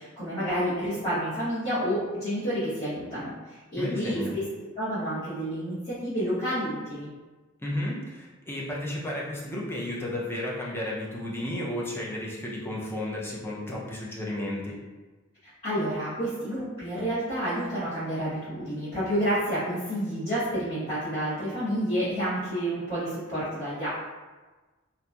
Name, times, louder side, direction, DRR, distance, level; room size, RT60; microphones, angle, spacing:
voice 1, 0.0-4.4 4.8-7.1 15.4-23.9, equal, 30° left, -15 dB, 1.0 m, -29 dB
voice 2, 3.8-4.4 7.6-14.8, left 1 dB, 10° left, -4 dB, 0.4 m, -33 dB
2.8 x 2.5 x 2.3 m, 1.3 s
head